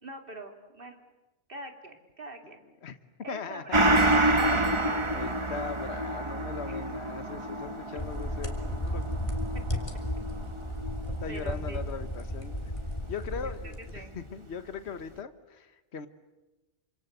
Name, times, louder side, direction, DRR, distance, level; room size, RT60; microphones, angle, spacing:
voice 1, 0.0-1.0 1.5-2.6 3.2-3.8 4.5-5.1 6.7-6.8 9.5-9.6 11.3-11.8 13.3-14.1, right 2 dB, 50° right, 5 dB, 2.9 m, -44 dB
voice 2, 3.3-4.1 4.5-4.8 5.1-9.1 11.2-12.6 13.1-16.1, left 6 dB, 70° left, 11 dB, 1.4 m, -39 dB
Gong, 3.7-12.7 13.0-13.1, right 1 dB, 25° right, 1.4 m, -29 dB
Doorbell, 3.9-5.9, right 2 dB, 75° right, 6.7 m, -52 dB
sound 1, 8.0-14.3, left 1 dB, 30° left, 3.2 m, -34 dB
27.5 x 26.5 x 8.0 m, 1.1 s
omnidirectional pair, 1.2 m